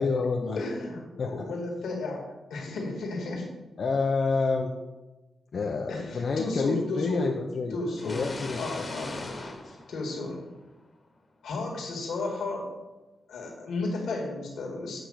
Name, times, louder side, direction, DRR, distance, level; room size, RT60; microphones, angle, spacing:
voice 1, 0.0-0.6 1.2-1.3 3.8-4.7 5.5-8.9 9.6-9.8, left 4 dB, 60° left, 1 dB, 0.6 m, -28 dB
voice 2, 0.6-2.2 2.5-3.5 5.9-7.3 7.7-8.3 8.5-9.2 9.9-10.4 11.4-12.7 13.3-15.0, left 2 dB, 80° left, -1 dB, 1.8 m, -33 dB
sound 1, 8.0-10.8, left 2 dB, 35° left, 1.2 m, -39 dB
8.0 x 3.4 x 6.3 m, 1.1 s
cardioid pair, 70°, 0 cm